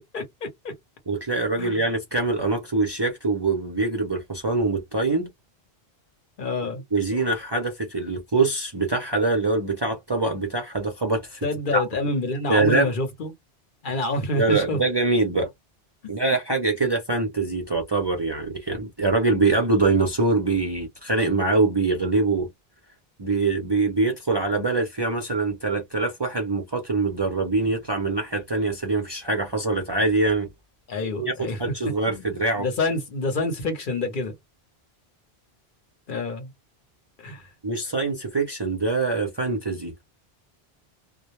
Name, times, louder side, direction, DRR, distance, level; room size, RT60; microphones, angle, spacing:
voice 1, 0.1-0.5 1.6-1.8 6.4-6.8 11.4-13.3 13.8-14.8 30.9-31.6 32.1-34.3 36.1-36.5 37.2-37.5, left 2 dB, 55° left, 0.9 m, -27 dB
voice 2, 1.1-5.3 6.9-11.4 11.7-11.8 12.5-12.9 14.3-15.5 16.1-22.5 23.2-30.5 31.2-32.7 37.6-39.9, right 3 dB, 35° right, 0.5 m, -24 dB
2.1 x 2.0 x 2.9 m
omnidirectional pair, 1.0 m